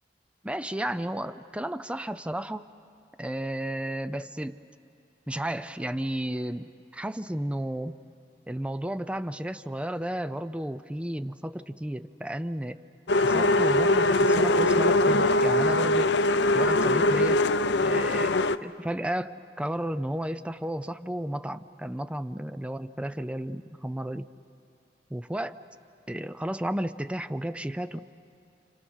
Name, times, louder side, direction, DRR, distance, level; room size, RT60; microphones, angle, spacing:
voice 1, 0.4-2.7 3.2-4.6 5.3-8.0 8.5-12.8 13.2-16.1 16.5-17.4 17.8-24.3 25.1-25.6 26.1-28.0, right 1 dB, 5° right, 12 dB, 0.5 m, -33 dB
sound 1, 13.1-18.6, left 2 dB, 75° left, 0.6 m, -22 dB
30.0 x 27.0 x 6.3 m, 2.6 s
head